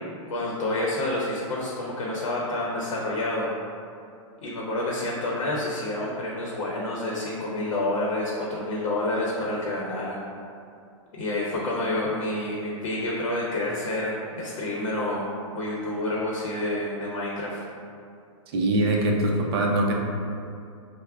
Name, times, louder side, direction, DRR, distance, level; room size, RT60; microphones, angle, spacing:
voice 1, 0.3-3.5 4.4-10.2 11.1-15.3 15.5-17.6, left 1 dB, 65° left, -4 dB, 0.8 m, -28 dB
voice 2, 18.5-19.9, right 1 dB, 50° right, 0 dB, 0.5 m, -22 dB
5.8 x 2.1 x 2.3 m, 2.5 s
supercardioid pair, 160°, 17 cm